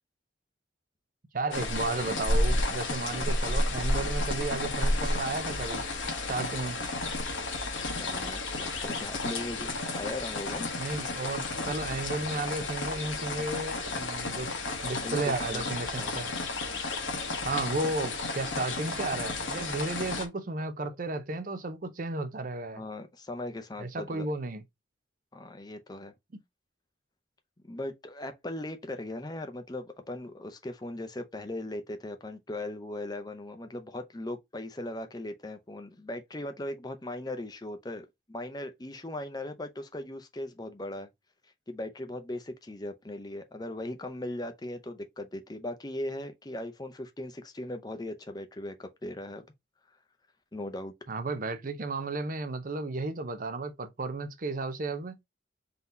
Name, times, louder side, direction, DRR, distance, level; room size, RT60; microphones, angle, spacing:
voice 1, 1.3-5.8 6.3-6.8 10.8-14.5 14.8-16.3 17.4-22.8 23.8-24.6 51.1-55.2, right 2 dB, 40° right, 0.5 m, -33 dB
sound 1, 1.5-20.3, left 2 dB, 70° left, 1.0 m, -32 dB
voice 2, 8.0-10.7 15.0-15.7 16.0-16.1 22.7-24.3 25.3-26.1 27.7-41.1 41.7-49.4 50.5-50.9, left 1 dB, 20° left, 0.6 m, -38 dB
3.8 x 2.8 x 3.7 m
head